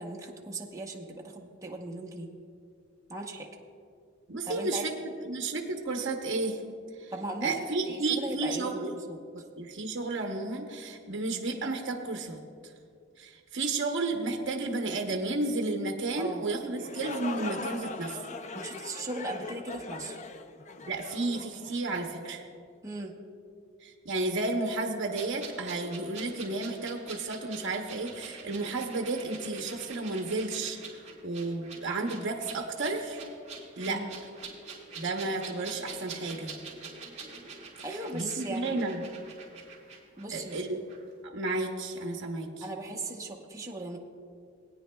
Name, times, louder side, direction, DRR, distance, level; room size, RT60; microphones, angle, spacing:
voice 1, 0.0-2.3 3.1-3.5 4.4-4.8 7.1-7.5 7.8-8.8 9.1-9.2 16.2-16.4 18.5-20.2 22.8-23.1 33.9-34.1 37.8-38.8 40.2-40.6 42.6-44.0, right 2 dB, 15° right, -1 dB, 0.8 m, -37 dB
voice 2, 4.3-6.6 7.0-7.1 7.4-8.9 9.3-12.4 13.2-18.2 20.9-22.4 23.8-30.8 31.2-33.2 33.8-34.0 35.0-36.5 37.9-39.0 40.3-40.8 41.2-42.6, right 2 dB, 60° right, 2 dB, 0.8 m, -32 dB
sound 1, 16.6-22.3, left 3 dB, 35° left, 0.5 m, -40 dB
sound 2, 25.1-40.6 40.9-41.0, right 4 dB, 35° right, 2.7 m, -45 dB
20.0 x 9.4 x 2.2 m, 2.3 s
head